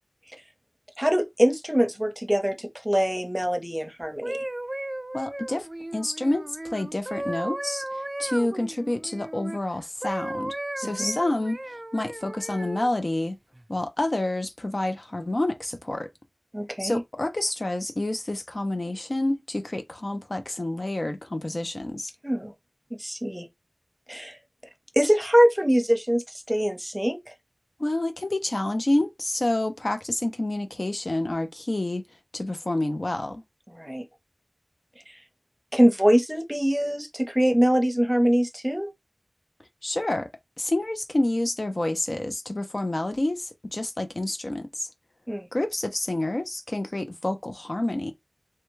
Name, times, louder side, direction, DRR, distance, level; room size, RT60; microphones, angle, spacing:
voice 1, 1.0-4.4 11.0-11.2 16.5-17.0 22.2-22.5 23.0-23.5 24.1-24.4 25.0-27.2 33.7-34.0 35.7-38.9 45.3-45.5, equal, 10° right, 0.8 m, -23 dB
sound 1, 4.0-9.6 10.0-12.9 13.5-13.8, right 1 dB, 40° right, 0.3 m, -35 dB
voice 2, 5.1-5.7 5.9-13.4 13.7-16.1 16.8-22.1 27.8-32.0 32.3-33.4 39.8-40.3 40.6-44.9 45.5-48.1, left 1 dB, 55° left, 0.4 m, -28 dB
3.3 x 2.2 x 3.0 m
wide cardioid pair, 40°, 0 cm